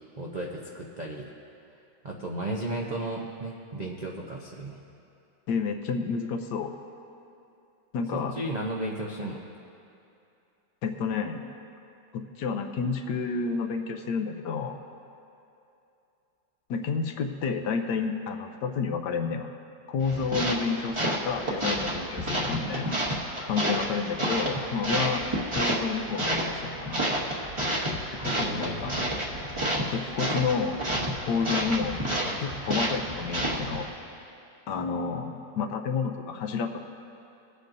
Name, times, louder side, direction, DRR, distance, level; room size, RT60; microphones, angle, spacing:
voice 1, 0.2-1.3 2.0-4.8 8.1-9.4 28.4-28.8, right 1 dB, 55° right, -2 dB, 0.4 m, -34 dB
voice 2, 5.5-6.7 7.9-8.3 10.8-11.4 12.1-14.8 16.7-19.5 19.9-23.0 23.5-25.2 25.5-27.1 28.2-28.9 29.9-30.8 31.2-32.0 32.2-33.9 34.7-36.8, left 5 dB, 70° left, 5 dB, 1.3 m, -30 dB
sound 1, 20.0-33.9, right 1 dB, 20° right, 0.9 m, -30 dB
23.5 x 8.4 x 2.6 m, 2.7 s
omnidirectional pair, 2.0 m